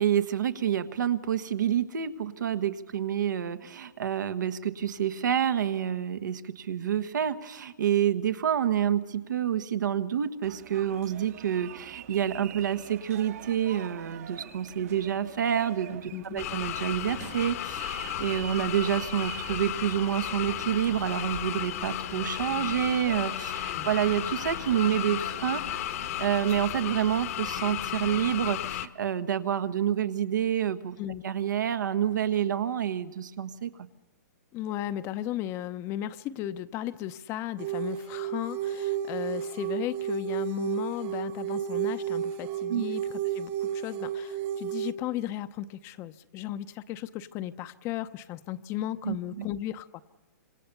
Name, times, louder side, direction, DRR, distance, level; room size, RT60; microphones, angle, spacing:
voice 1, 0.0-25.9 26.2-31.0 31.2-33.7 42.7-42.8 49.0-49.4, right 9 dB, 80° right, 10 dB, 1.5 m, -28 dB
sound 1, 10.4-26.7, right 12 dB, 55° right, 1.4 m, -46 dB
voice 2, 16.1-16.4 23.7-23.9 31.0-31.2 34.5-43.0 43.3-50.0, left 12 dB, 25° left, 13 dB, 0.8 m, -35 dB
sound 2, 16.4-28.9, left 13 dB, 55° left, 1.2 m, -34 dB
sound 3, 37.6-44.9, right 10 dB, 35° right, 1.4 m, -32 dB
26.0 x 26.0 x 6.9 m, 1.2 s
hypercardioid pair, 145°, 10 cm